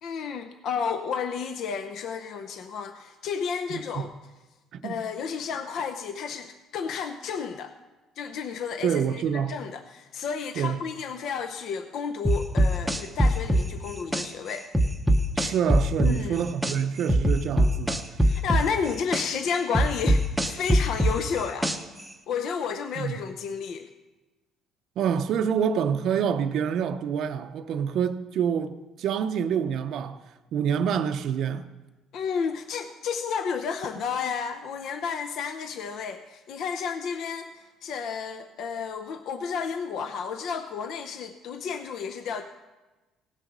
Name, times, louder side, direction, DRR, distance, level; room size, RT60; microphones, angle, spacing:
voice 1, 0.0-4.1 4.8-7.7 8.2-14.7 16.0-16.4 18.2-21.7 22.3-23.9 32.1-42.4, left 6 dB, 55° left, 0.7 m, -32 dB
voice 2, 3.7-4.1 4.8-5.0 8.8-9.5 10.6-10.8 15.4-18.1 23.0-23.1 25.0-30.2 30.5-31.7, right 7 dB, 55° right, 0.6 m, -27 dB
sound 1, 12.2-14.3 14.7-16.8 17.1-19.3 19.7-22.0, right 1 dB, 5° right, 0.7 m, -21 dB
17.0 x 6.6 x 6.1 m
cardioid pair, 140°, 0 cm